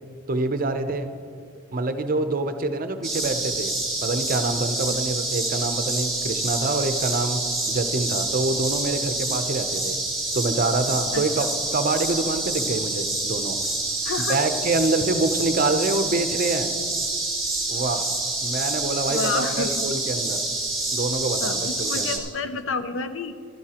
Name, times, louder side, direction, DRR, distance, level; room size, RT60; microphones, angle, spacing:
voice 1, 0.3-1.1 1.7-3.7 4.0-7.4 7.7-10.0 10.3-11.5 11.7-13.6 14.3-16.7 17.7-18.1 18.4-20.4 20.9-22.2, right 2 dB, 45° right, 8 dB, 0.6 m, -26 dB
sound 1, 3.0-22.2, right 2 dB, ahead, 2.2 m, -27 dB
voice 2, 11.1-11.5 14.0-14.4 19.1-19.8 21.4-23.3, left 4 dB, 65° left, 10 dB, 0.5 m, -30 dB
15.5 x 12.5 x 2.9 m, 2.3 s
head